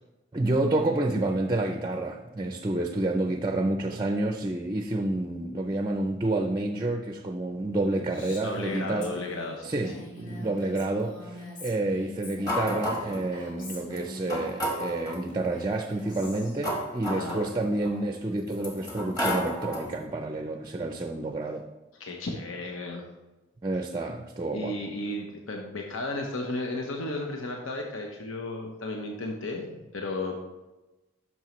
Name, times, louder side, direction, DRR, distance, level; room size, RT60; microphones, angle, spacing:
voice 1, 0.3-9.1 9.6-21.7 23.6-24.8, right 2 dB, 20° right, 5 dB, 0.4 m, -29 dB
voice 2, 7.9-9.8 17.1-17.5 22.0-23.1 24.5-30.4, left 2 dB, 85° left, 1 dB, 0.9 m, -34 dB
Female speech woman speaking, 8.1-14.5 15.3-16.7, left 1 dB, 70° left, 2.7 m, -44 dB
sound 1, 12.5-13.3 13.9-14.0 14.3-15.2 16.1-17.9 18.5-20.0, equal, 20° left, 1.3 m, -32 dB
10.5 x 6.3 x 3.1 m, 1.1 s
head